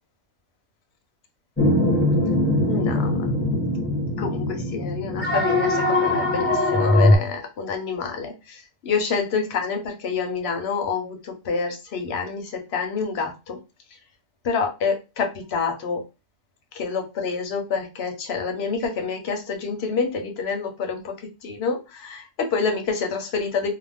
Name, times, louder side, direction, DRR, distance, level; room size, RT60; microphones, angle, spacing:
sound 1, 1.6-7.2, left 1 dB, 10° left, 0.9 m, -21 dB
voice 1, 2.7-3.3 4.2-13.6 14.4-16.0 16.7-21.1 21.4-23.7, left 5 dB, 60° left, 5 dB, 0.9 m, -27 dB
2.4 x 2.2 x 3.4 m, 0.27 s
omnidirectional pair, 1.4 m